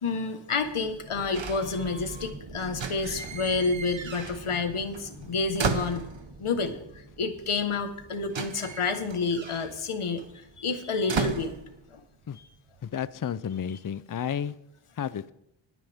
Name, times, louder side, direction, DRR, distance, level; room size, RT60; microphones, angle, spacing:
voice 1, 0.0-6.1 6.4-11.6 11.9-12.0 12.3-12.5, left 4 dB, 80° left, 7 dB, 1.5 m, -29 dB
sound 1, 0.6-12.0, right 2 dB, 85° right, 2.0 m, -47 dB
sound 2, 1.3-2.3 2.7-4.7 4.9-6.5 7.5-7.6 7.8-12.3 12.6-13.0, right 6 dB, 65° right, 1.2 m, -35 dB
voice 2, 12.8-14.6 15.0-15.3, left 8 dB, 40° left, 16 dB, 0.5 m, -32 dB
21.0 x 9.4 x 3.6 m, 0.77 s
wide cardioid pair, 85°, 49 cm